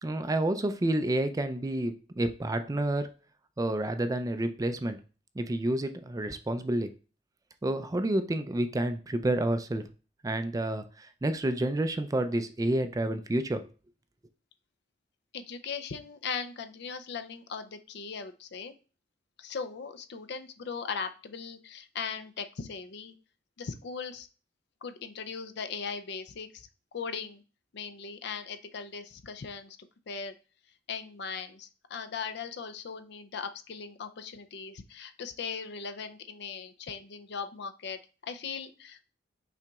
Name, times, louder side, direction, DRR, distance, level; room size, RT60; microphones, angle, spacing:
voice 1, 0.0-3.1 3.6-5.0 5.4-6.9 7.6-9.8 10.2-13.6, right 1 dB, 20° right, 9 dB, 0.4 m, -29 dB
voice 2, 15.3-18.7 19.4-23.1 23.6-24.3 24.8-26.7 26.9-27.4 27.7-29.8 30.1-30.3 30.9-39.1, left 5 dB, 60° left, 10 dB, 0.5 m, -39 dB
5.8 x 3.9 x 2.3 m, 0.35 s
head